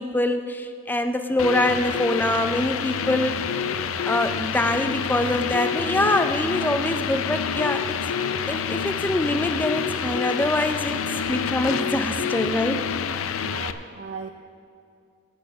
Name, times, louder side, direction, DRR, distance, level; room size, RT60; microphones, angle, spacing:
voice 1, 0.0-3.4 4.1-8.0 8.5-12.8, left 1 dB, 10° left, 8 dB, 0.4 m, -24 dB
sound 1, 1.4-13.7, left 7 dB, 85° left, 0.5 m, -27 dB
voice 2, 13.4-14.3, right 5 dB, 65° right, 6 dB, 0.5 m, -37 dB
10.5 x 8.7 x 5.9 m, 2.4 s
head